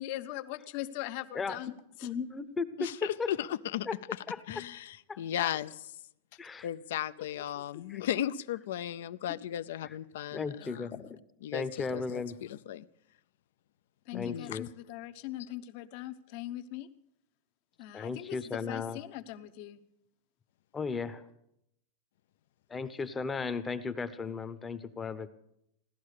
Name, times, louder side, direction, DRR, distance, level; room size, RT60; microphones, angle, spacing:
voice 1, 0.0-2.1 6.3-6.4 7.2-7.3 7.6-7.8 14.1-16.9 17.8-19.8, left 14 dB, 45° left, 10 dB, 0.8 m, -41 dB
voice 2, 2.0-3.3 3.9-4.0 4.3-4.4 5.1-5.5 6.4-6.7 7.9-8.0 10.3-11.2 11.5-12.4 14.1-14.7 17.9-19.0 20.7-21.2 22.7-25.3, left 4 dB, 15° left, 12 dB, 0.7 m, -35 dB
voice 3, 2.8-5.8 6.6-11.1 11.4-12.9 14.1-14.6, left 11 dB, 70° left, 15 dB, 0.5 m, -36 dB
17.0 x 12.0 x 6.6 m, 0.78 s
supercardioid pair, 160°, 0 cm